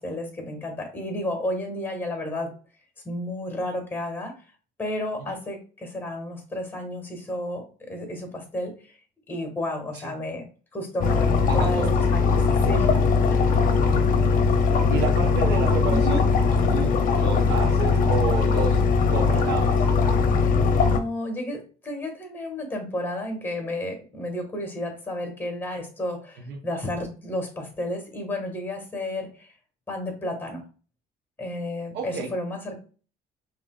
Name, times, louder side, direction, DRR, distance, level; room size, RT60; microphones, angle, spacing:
voice 1, 0.0-2.6 3.0-4.3 4.8-8.7 9.3-10.4 10.7-11.8 12.1-12.9 13.3-13.4 15.9-16.2 20.4-29.5 29.9-30.6 31.4-32.8, left 1 dB, 10° left, 3 dB, 2.0 m, -32 dB
sound 1, 11.0-21.0, left 4 dB, 55° left, 0.8 m, -20 dB
voice 2, 11.5-11.9 13.3-14.3 14.9-16.3 16.5-18.8 19.1-19.8 26.4-26.6 31.9-32.3, right 5 dB, 80° right, 2 dB, 1.0 m, -31 dB
5.2 x 3.0 x 2.5 m, 0.37 s
cardioid pair, 110°, 17 cm